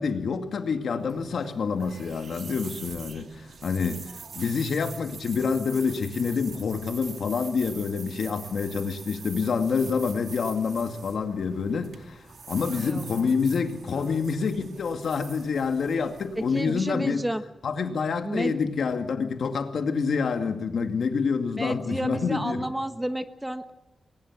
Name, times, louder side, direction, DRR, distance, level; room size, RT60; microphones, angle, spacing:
voice 1, 0.0-3.3 3.6-17.2 17.6-22.7, left 5 dB, 70° left, 2.2 m, -27 dB
sound 1, 0.9-17.1, right 5 dB, 65° right, 2.2 m, -44 dB
voice 2, 12.7-13.3 13.9-14.2 16.3-17.4 18.2-18.5 21.6-23.7, right 1 dB, 5° right, 1.2 m, -31 dB
20.5 x 19.5 x 7.5 m
wide cardioid pair, 130°, 0 cm